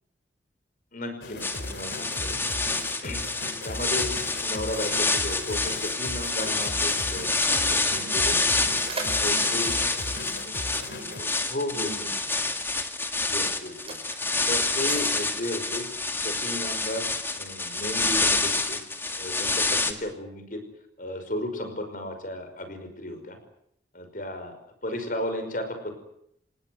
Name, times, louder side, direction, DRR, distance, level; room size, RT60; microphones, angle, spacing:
voice 1, 0.9-2.4 3.0-3.2 3.6-4.1 4.4-8.3 9.2-9.7 11.2-12.1 13.2-14.0 14.5-15.9 16.2-17.1 17.3-18.8 19.2-20.6 21.0-23.4 23.9-24.5 24.8-26.0, left 1 dB, 50° left, 7 dB, 5.7 m, -34 dB
sound 1, 1.2-11.2, left 2 dB, 70° left, 3.3 m, -38 dB
sound 2, 1.4-19.9, left 3 dB, 15° left, 2.0 m, -27 dB
voice 2, 7.5-8.5 8.8-11.2 11.7-12.3, right 2 dB, 70° right, 5 dB, 4.2 m, -44 dB
Mechanisms, 8.8-11.1 12.1-12.3 13.1-16.7, right 3 dB, 30° right, 5.7 m, -42 dB
27.5 x 19.5 x 8.0 m, 0.74 s
head